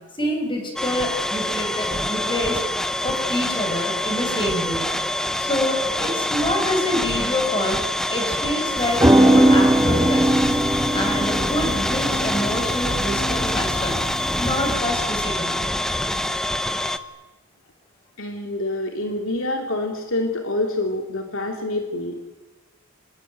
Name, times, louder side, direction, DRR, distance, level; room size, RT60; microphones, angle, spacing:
voice 1, 0.2-2.6 3.0-4.8 5.4-7.8 8.1-10.6 10.9-14.1 14.4-15.6, left 1 dB, 25° left, 2 dB, 7.1 m, -26 dB
sound 1, 0.8-17.0, left 1 dB, 5° left, 1.0 m, -25 dB
sound 2, 8.8-14.7, right 1 dB, 15° right, 1.6 m, -20 dB
voice 2, 18.2-22.3, left 2 dB, 65° left, 3 dB, 2.9 m, -26 dB
26.5 x 20.5 x 9.3 m, 1.2 s
head